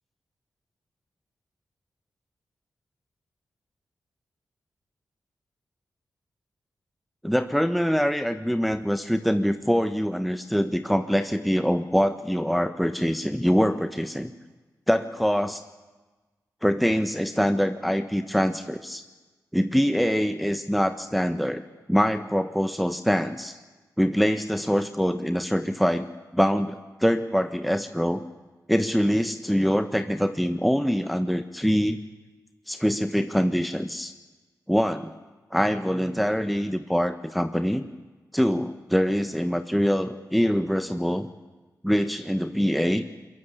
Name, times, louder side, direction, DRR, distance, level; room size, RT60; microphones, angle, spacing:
voice 1, 7.2-14.3 14.9-15.6 16.6-19.0 19.5-21.6 21.9-23.6 24.0-26.1 26.3-28.2 28.7-32.0 32.7-34.1 34.7-35.1 35.5-37.8 38.3-41.3 41.8-43.0, equal, ahead, 8 dB, 1.3 m, -24 dB
22.0 x 22.0 x 8.4 m, 1.2 s
cardioid pair, 50°, 8 cm